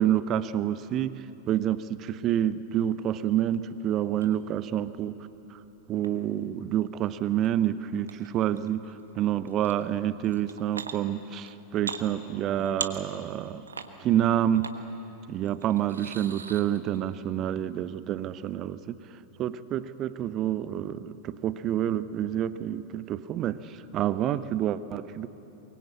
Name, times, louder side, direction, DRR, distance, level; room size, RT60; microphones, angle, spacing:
voice 1, 0.0-5.2 5.5-5.6 5.9-13.6 14.0-14.7 15.3-19.0 19.4-25.3, right 11 dB, 35° right, 15 dB, 0.8 m, -28 dB
sound 1, 4.2-4.3 4.9-6.1 7.4-7.5 8.0-8.9 9.5-9.9 10.2-11.0 11.4-12.0 12.4-13.4 13.7-13.9 14.5-14.8 15.4-17.0, right 5 dB, 75° right, 1.3 m, -39 dB
23.5 x 23.0 x 8.5 m, 3.0 s
figure-of-eight pair, 90°, 0 cm